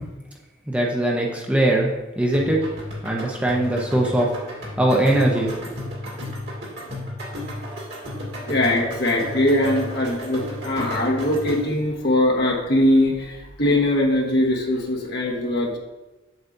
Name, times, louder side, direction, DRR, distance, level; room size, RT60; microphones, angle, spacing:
voice 1, 0.7-1.9 2.2-2.6 3.0-4.3 4.8-5.7, right 1 dB, 5° right, -2 dB, 0.8 m, -21 dB
sound 1, 2.3-11.8, left 1 dB, 55° right, 2.1 m, -33 dB
voice 2, 8.5-15.8, left 1 dB, 55° left, -1 dB, 1.3 m, -21 dB
8.0 x 7.2 x 2.7 m, 1.1 s
head